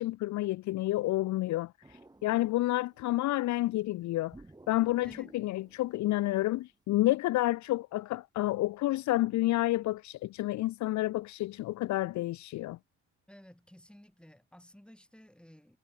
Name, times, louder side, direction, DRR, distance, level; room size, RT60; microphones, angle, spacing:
voice 1, 0.0-1.7 2.2-4.4 4.7-12.8, left 16 dB, 70° left, 0.5 m, -29 dB
sound 1, 1.8-3.3 4.3-6.7, right 2 dB, 15° right, 5.1 m, -56 dB
voice 2, 13.3-15.8, equal, 5° left, 6.7 m, -54 dB
cardioid pair, 90°, 30 cm